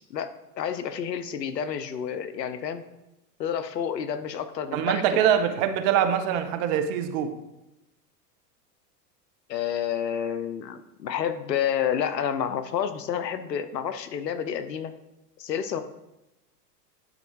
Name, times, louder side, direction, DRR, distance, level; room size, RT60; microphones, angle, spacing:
voice 1, 0.6-2.8 3.4-5.2 9.5-14.9 15.4-15.8, left 8 dB, 85° left, 11 dB, 0.8 m, -29 dB
voice 2, 4.7-7.3, right 9 dB, 50° right, 9 dB, 1.0 m, -24 dB
11.0 x 4.4 x 4.7 m, 0.94 s
hypercardioid pair, 100°, 48 cm